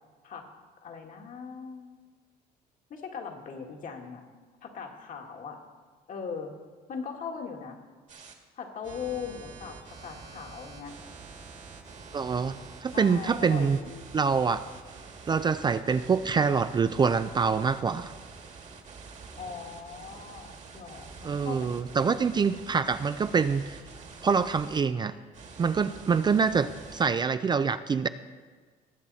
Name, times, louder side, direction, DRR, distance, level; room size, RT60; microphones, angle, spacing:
voice 1, 0.8-1.9 2.9-4.2 4.6-5.6 6.1-6.5 6.9-7.8 8.6-10.9 12.9-14.1 19.4-21.8, left 6 dB, 50° left, 2 dB, 1.9 m, -39 dB
sound 1, 8.1-8.3 8.8-24.8 25.3-27.0, right 4 dB, 45° right, 1.7 m, -47 dB
voice 2, 12.1-13.8 14.1-14.7 15.3-18.1 21.2-23.8 24.2-25.1 25.6-28.1, right 5 dB, 25° right, 12 dB, 0.4 m, -25 dB
19.5 x 7.3 x 4.1 m, 1.4 s
cardioid pair, 110°, 17 cm